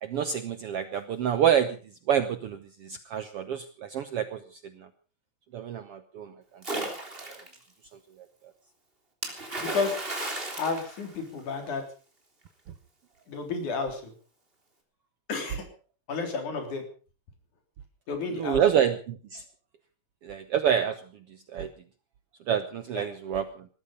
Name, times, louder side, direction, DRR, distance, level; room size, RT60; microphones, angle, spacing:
voice 1, 0.0-1.8 2.1-4.9 5.5-6.9 7.2-7.3 18.3-19.4 20.2-21.0 21.3-21.7 22.5-23.7, right 9 dB, 70° right, 11 dB, 1.5 m, -28 dB
Splash splatter, 6.6-7.6 9.2-11.7, right 2 dB, 15° right, 3.6 m, -34 dB
voice 2, 9.6-10.0 10.6-11.8 13.3-14.1 15.3-15.6 16.1-16.8 18.1-18.6 22.9-23.1, left 4 dB, 70° left, 5 dB, 4.9 m, -31 dB
19.0 x 14.0 x 5.3 m, 0.37 s
omnidirectional pair, 3.7 m